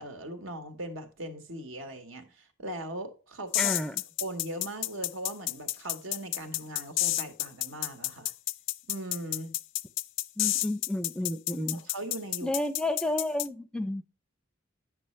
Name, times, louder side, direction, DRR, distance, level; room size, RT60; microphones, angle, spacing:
voice 1, 0.0-3.7 4.2-8.3 8.9-9.5 11.7-12.5, right 1 dB, 80° right, 1.3 m, -39 dB
sound 1, 3.5-13.5, left 16 dB, 70° left, 0.3 m, -30 dB
voice 2, 3.6-4.0 10.4-11.8 12.4-14.0, left 1 dB, 5° left, 0.4 m, -31 dB
9.3 x 6.1 x 3.2 m
head